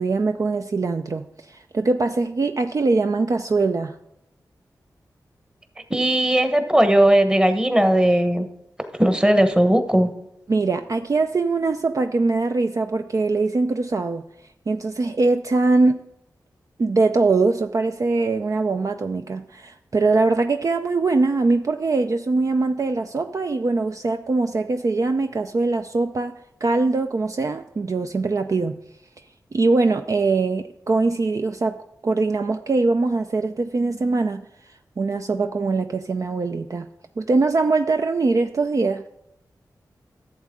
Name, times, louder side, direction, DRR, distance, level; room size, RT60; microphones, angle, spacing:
voice 1, 0.0-3.9 10.5-14.2 14.7-16.0 16.8-26.3 26.6-28.7 29.5-34.4 35.0-36.9 37.2-39.1, right 3 dB, 50° right, 6 dB, 0.5 m, -22 dB
voice 2, 5.9-8.5 9.0-10.1, right 1 dB, 10° right, 8 dB, 1.1 m, -17 dB
11.5 x 7.3 x 3.7 m, 0.82 s
cardioid pair, 50°, 7 cm